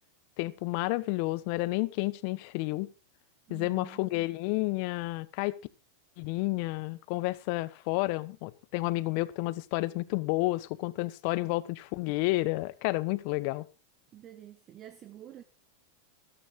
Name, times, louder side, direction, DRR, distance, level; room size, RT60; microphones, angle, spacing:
voice 1, 0.4-2.9 3.5-5.5 6.2-13.7, left 21 dB, 55° left, 1.1 m, -30 dB
voice 2, 3.5-4.0 14.1-15.4, right 11 dB, 35° right, 1.3 m, -48 dB
14.0 x 13.0 x 3.7 m
hypercardioid pair, 105°, 0 cm